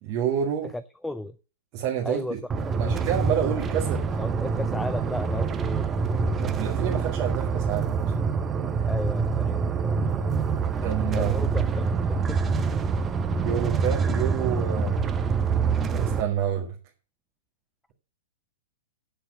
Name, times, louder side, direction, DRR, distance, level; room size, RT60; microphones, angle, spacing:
voice 1, 0.0-0.7 1.7-2.4 2.8-4.0 6.4-8.0 10.8-11.3 13.4-15.0 15.9-16.8, right 9 dB, 35° right, -1 dB, 1.7 m, -28 dB
voice 2, 0.7-1.4 2.0-2.4 2.8-3.0 4.1-5.9 8.9-10.1 11.2-11.7 12.1-12.4, left 1 dB, 5° left, 13 dB, 0.4 m, -34 dB
sound 1, 2.5-16.2, right 5 dB, 20° right, 0.8 m, -26 dB
7.8 x 6.9 x 7.7 m, 0.37 s
figure-of-eight pair, 105°, 0 cm